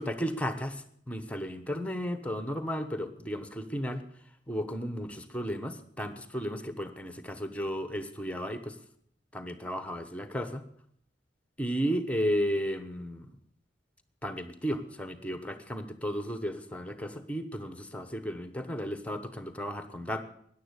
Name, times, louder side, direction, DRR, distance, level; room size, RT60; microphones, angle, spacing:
voice 1, 0.0-4.0 4.5-8.8 9.3-10.6 11.6-13.3 14.2-20.2, equal, 10° left, 10 dB, 1.0 m, -34 dB
13.5 x 10.5 x 8.1 m, 0.66 s
head